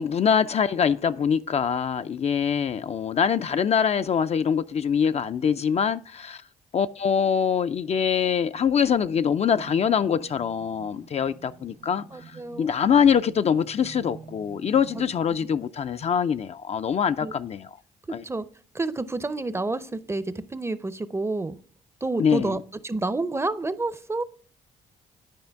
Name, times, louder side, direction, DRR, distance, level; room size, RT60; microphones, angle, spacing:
voice 1, 0.0-6.4 6.7-12.0 12.6-17.7 18.1-18.2 22.2-22.6, left 7 dB, 45° left, 0.4 m, -24 dB
sound 1, 9.5-15.6, right 5 dB, 85° right, 1.6 m, -48 dB
voice 2, 12.1-12.8 17.2-17.3 18.2-18.4 18.7-21.6 22.0-22.6 22.8-24.2, right 2 dB, 15° right, 0.5 m, -29 dB
10.5 x 5.0 x 3.4 m
supercardioid pair, 70°, 16 cm